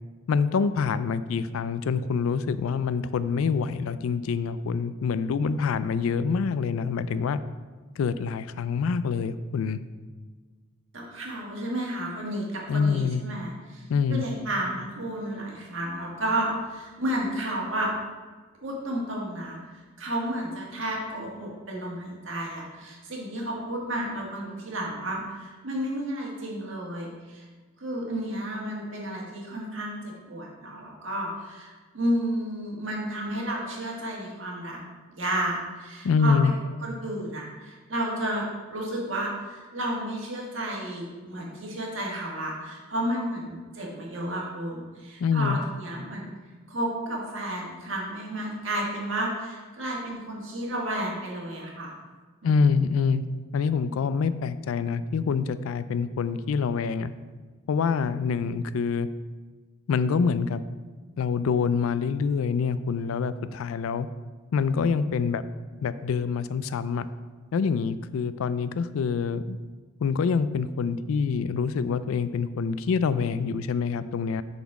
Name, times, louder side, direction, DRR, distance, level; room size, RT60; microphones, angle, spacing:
voice 1, 0.3-7.4 8.0-9.8 12.7-13.2 13.9-14.2 36.0-36.5 45.2-45.6 52.4-53.2 53.5-57.1 57.7-59.1 59.9-60.6 61.2-64.1 64.5-65.4 65.8-67.1 67.5-69.6 70.0-74.4, left 5 dB, 90° left, 14 dB, 0.4 m, -26 dB
voice 2, 10.9-13.8 14.1-17.9 18.6-27.4 27.8-34.8 35.1-36.3 36.8-46.3 46.7-52.0 52.4-52.7, right 1 dB, 70° right, -2 dB, 1.6 m, -32 dB
6.9 x 4.1 x 4.8 m, 1.4 s
head